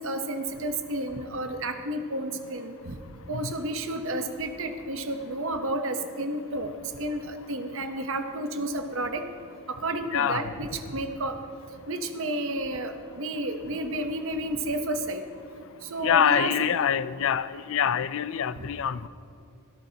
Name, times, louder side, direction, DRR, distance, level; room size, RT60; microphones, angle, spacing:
voice 1, 0.0-3.0 3.3-9.2 9.7-11.4 11.9-15.2 15.8-16.8 18.6-18.7, right 1 dB, 65° right, 7 dB, 0.9 m, -31 dB
voice 2, 10.1-10.5 16.0-19.1, left 8 dB, 65° left, 16 dB, 0.4 m, -25 dB
24.0 x 13.0 x 2.9 m, 2.6 s
head